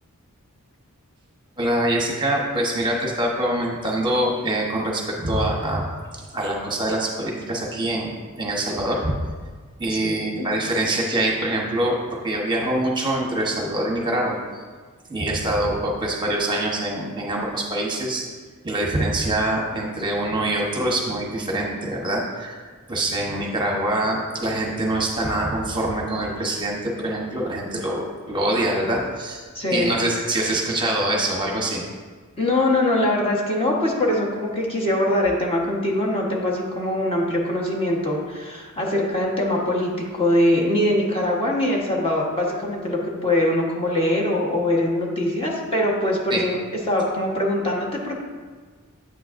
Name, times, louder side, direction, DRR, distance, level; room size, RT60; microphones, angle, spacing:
voice 1, 1.6-5.9 6.1-9.1 9.8-14.6 15.1-18.2 18.6-22.6 22.9-29.4 29.7-31.8 46.3-46.4, right 1 dB, 20° right, -1 dB, 1.0 m, -24 dB
voice 2, 10.0-10.5 29.5-29.9 32.4-46.6 46.9-48.2, left 1 dB, 25° left, -3 dB, 1.2 m, -22 dB
8.9 x 8.2 x 2.6 m, 1.5 s
head